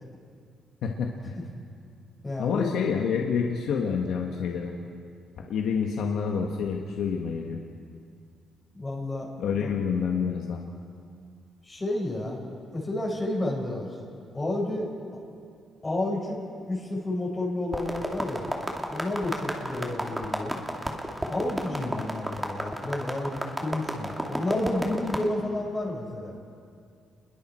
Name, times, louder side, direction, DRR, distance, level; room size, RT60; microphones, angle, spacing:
voice 1, 0.8-1.4 2.4-4.7 5.5-7.6 9.4-10.6, left 6 dB, 80° left, 1 dB, 1.5 m, -28 dB
voice 2, 2.2-2.7 8.7-9.3 9.6-9.7 11.6-12.4 12.7-13.9 14.3-14.9 15.8-18.5 18.9-20.6 21.3-26.3, left 1 dB, 25° left, -3 dB, 5.1 m, -30 dB
sound 1, 17.7-25.3, right 1 dB, 10° right, 2.5 m, -32 dB
28.5 x 21.5 x 4.5 m, 2.3 s
cardioid pair, 90°, 0 cm